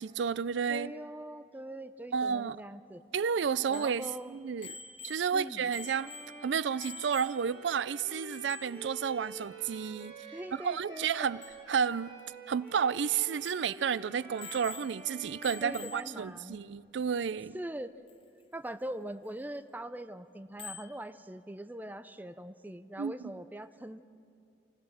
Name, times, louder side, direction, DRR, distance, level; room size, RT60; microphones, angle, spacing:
voice 1, 0.0-0.9 2.1-2.6 3.1-4.7 5.0-6.1 6.4-10.1 10.6-12.2 12.5-17.6 23.0-23.3, right 7 dB, 80° right, 0.4 m, -31 dB
voice 2, 0.7-3.0 3.7-4.4 5.3-5.7 10.3-11.3 15.6-16.6 17.5-17.9 18.5-24.0, right 1 dB, 10° right, 0.5 m, -42 dB
Bicycle bell, 3.7-7.7 8.0-8.1 8.3-8.8 11.1-11.2 11.4-11.6 12.2-12.3 12.7-12.8 13.4-13.8 14.4-15.1 15.4-16.2 18.1-18.2 20.6-21.0, left 5 dB, 30° left, 1.0 m, -47 dB
Bowed string instrument, 5.7-16.7, right 2 dB, 30° right, 5.4 m, -49 dB
28.5 x 16.5 x 6.4 m
head